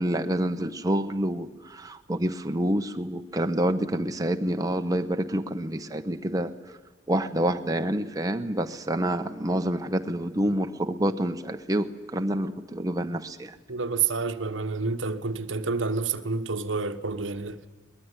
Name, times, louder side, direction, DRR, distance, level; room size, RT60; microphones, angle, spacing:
voice 1, 0.0-6.5 7.1-13.5, right 1 dB, 20° right, 0.9 m, -27 dB
voice 2, 13.7-17.6, right 4 dB, 80° right, 1.2 m, -29 dB
22.0 x 20.0 x 9.7 m
head